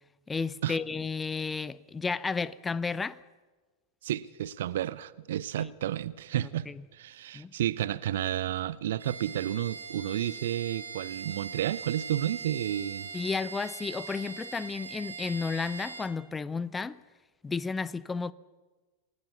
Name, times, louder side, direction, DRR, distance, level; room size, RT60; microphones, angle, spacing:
voice 1, 0.3-3.2 5.6-5.7 6.7-6.8 7.3-7.5 13.1-17.0 17.4-18.3, left 4 dB, 15° left, 0.7 m, -32 dB
voice 2, 4.0-6.7 6.9-13.1, right 12 dB, 60° right, 0.8 m, -31 dB
Bowed string instrument, 9.0-16.2, right 4 dB, 75° right, 3.4 m, -41 dB
28.0 x 19.5 x 7.1 m
figure-of-eight pair, 90°, 0 cm